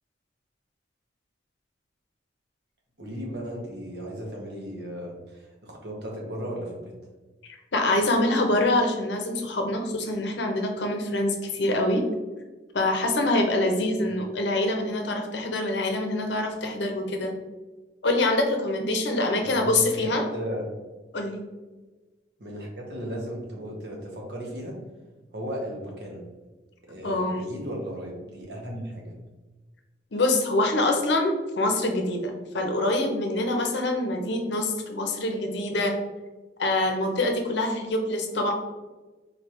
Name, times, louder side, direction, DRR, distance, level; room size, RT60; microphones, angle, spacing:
voice 1, 3.0-6.9 14.0-14.1 19.4-20.7 22.4-24.8 25.3-26.3 26.9-29.1, equal, 60° right, -1 dB, 1.1 m, -36 dB
voice 2, 7.4-12.0 12.7-17.3 18.0-20.2 21.1-21.4 27.0-27.4 30.1-35.9 36.6-38.5, left 2 dB, 70° left, 3 dB, 0.7 m, -25 dB
4.2 x 3.2 x 3.0 m, 1.2 s
head